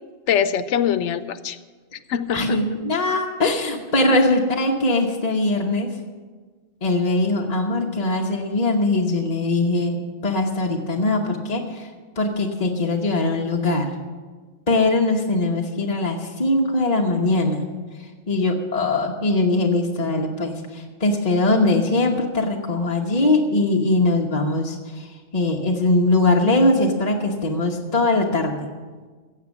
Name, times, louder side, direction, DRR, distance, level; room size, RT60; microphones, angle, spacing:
voice 1, 0.3-1.6 1.9-2.6 4.1-4.2, left 8 dB, 90° left, 13 dB, 1.0 m, -23 dB
voice 2, 2.3-5.9 6.8-11.9 12.2-13.9 14.7-17.6 18.3-25.1 25.3-28.7, left 2 dB, 35° left, 0 dB, 1.1 m, -21 dB
16.0 x 7.7 x 7.1 m, 1.4 s
omnidirectional pair, 1.2 m